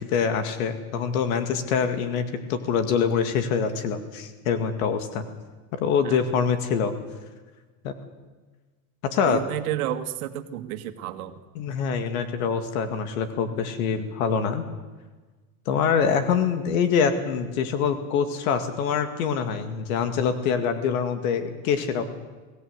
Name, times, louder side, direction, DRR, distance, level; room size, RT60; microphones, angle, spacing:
voice 1, 0.1-5.2 5.8-6.9 7.8-7.9 9.1-9.4 11.6-14.6 15.7-22.0, left 6 dB, 70° left, 8 dB, 2.3 m, -25 dB
voice 2, 9.2-11.3, right 12 dB, 75° right, 8 dB, 2.0 m, -31 dB
23.5 x 17.0 x 8.1 m, 1.3 s
supercardioid pair, 140°, 43 cm